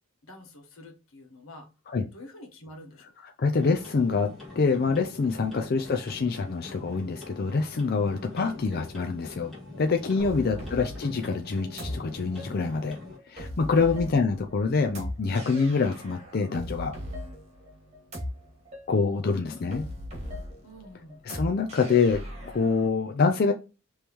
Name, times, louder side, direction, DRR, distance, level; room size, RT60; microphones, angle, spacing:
voice 1, 0.2-1.7 2.1-3.3 8.2-8.4 10.1-10.6 13.7-14.0 20.6-21.2, left 1 dB, 85° left, 1.3 m, -48 dB
voice 2, 3.4-4.3 4.6-9.5 9.8-13.0 13.3-16.9 18.9-19.9 21.3-23.5, left 4 dB, 50° left, 0.4 m, -26 dB
sound 1, 3.5-13.2, left 2 dB, ahead, 2.1 m, -44 dB
sound 2, 10.2-22.9, left 1 dB, 30° right, 1.8 m, -39 dB
5.2 x 3.1 x 3.0 m
head